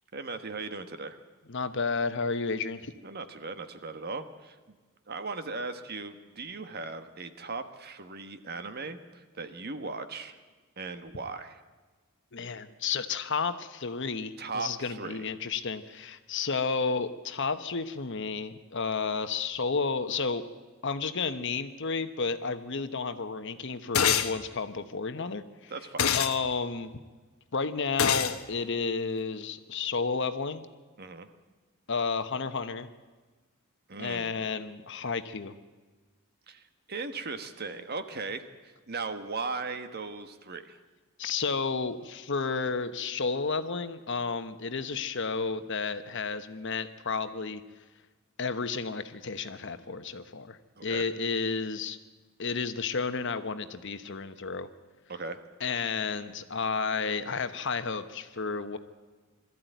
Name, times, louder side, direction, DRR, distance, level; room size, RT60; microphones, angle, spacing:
voice 1, 0.1-1.2 3.0-4.6 5.1-10.4 10.8-11.6 14.4-15.2 25.7-26.1 31.0-31.3 33.9-34.3 36.5-36.6 36.9-40.8 50.8-51.0 55.1-55.4, right 4 dB, 50° right, 9 dB, 1.4 m, -38 dB
voice 2, 1.5-2.9 12.3-20.4 20.8-25.7 26.1-26.9 27.5-30.7 31.9-32.9 34.0-35.5 41.2-47.6 48.4-52.0 52.4-54.7 55.6-58.8, left 4 dB, 60° left, 10 dB, 1.1 m, -32 dB
sound 1, 23.9-24.3 26.0-26.3 28.0-28.4, left 8 dB, 90° left, 1.1 m, -24 dB
21.5 x 14.0 x 9.3 m, 1.3 s
head